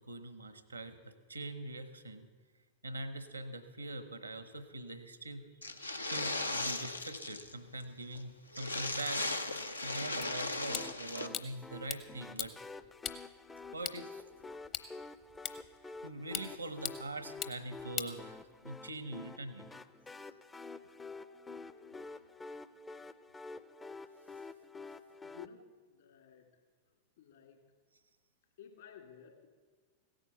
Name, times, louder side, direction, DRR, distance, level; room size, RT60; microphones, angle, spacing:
voice 1, 0.0-2.3 2.8-5.5 5.8-9.3 9.8-12.6 13.7-14.2 16.0-19.6, right 2 dB, 85° right, 12 dB, 1.0 m, -43 dB
sound 1, 5.6-7.5 7.8-7.9 8.1-8.2 8.5-11.3, left 2 dB, 80° left, 0.6 m, -37 dB
sound 2, 10.2-18.8, left 8 dB, 35° left, 0.9 m, -44 dB
sound 3, 10.7-25.5, left 3 dB, 15° left, 0.5 m, -49 dB
voice 2, 25.2-26.5 27.2-27.7 28.6-29.5, left 8 dB, 60° left, 3 dB, 2.7 m, -54 dB
16.5 x 9.2 x 6.9 m, 1.5 s
figure-of-eight pair, 90°, 0 cm